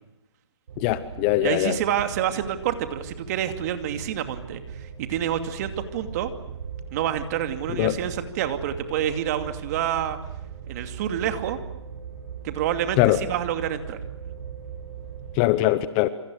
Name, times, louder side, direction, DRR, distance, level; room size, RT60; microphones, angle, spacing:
sound 1, 0.7-15.4, right 7 dB, 55° right, 5.9 m, -39 dB
voice 1, 0.8-1.8 7.8-8.0 13.0-13.2 15.4-16.1, left 16 dB, 20° left, 0.8 m, -21 dB
voice 2, 1.4-6.3 6.9-10.2 10.7-11.6 12.4-14.0, right 10 dB, 35° right, 2.5 m, -28 dB
27.5 x 27.5 x 6.4 m
hypercardioid pair, 155°, 15 cm